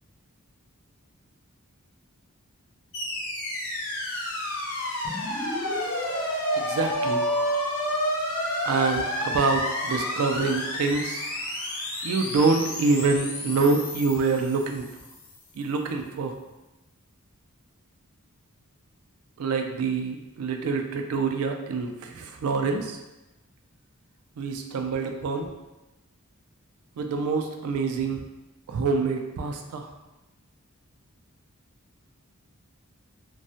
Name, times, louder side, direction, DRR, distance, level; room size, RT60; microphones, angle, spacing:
sound 1, 2.9-15.2, left 1 dB, 60° left, 0.5 m, -31 dB
sound 2, 5.0-10.1, left 1 dB, 15° left, 0.3 m, -33 dB
voice 1, 6.6-7.3 8.6-11.2 12.0-14.9 15.6-16.4 19.4-23.0 24.4-25.5 27.0-28.3 28.7-29.9, right 4 dB, 75° right, 4 dB, 0.3 m, -26 dB
2.2 x 2.0 x 2.6 m, 1.0 s
head